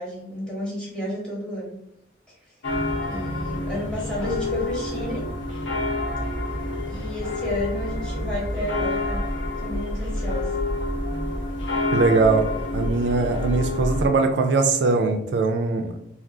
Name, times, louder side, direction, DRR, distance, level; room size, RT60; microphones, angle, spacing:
voice 1, 0.0-1.8 3.1-5.2 6.9-9.2 9.6-10.5, left 1 dB, 5° left, -6 dB, 1.1 m, -31 dB
sound 1, 2.6-14.1, left 1 dB, 90° left, 0.8 m, -28 dB
voice 2, 11.9-12.5 12.7-16.0, right 3 dB, 65° right, 5 dB, 0.3 m, -21 dB
2.4 x 2.3 x 3.6 m, 0.79 s
head